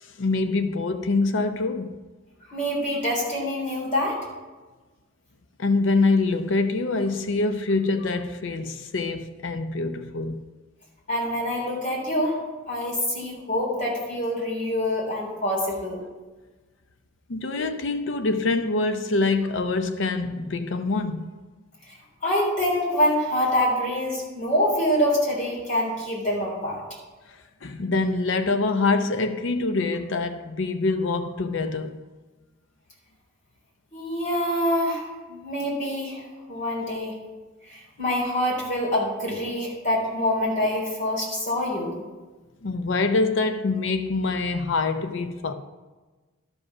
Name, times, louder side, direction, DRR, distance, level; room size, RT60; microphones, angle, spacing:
voice 1, 0.0-2.0 5.6-10.4 17.3-21.3 27.3-32.0 42.6-45.5, left 3 dB, 70° left, 0.6 m, -25 dB
voice 2, 2.5-4.2 11.1-12.4 12.7-16.0 21.9-22.0 22.2-26.8 33.9-36.2 36.5-37.2 37.7-41.9, left 1 dB, 40° left, 3.7 m, -25 dB
12.0 x 5.3 x 6.0 m
head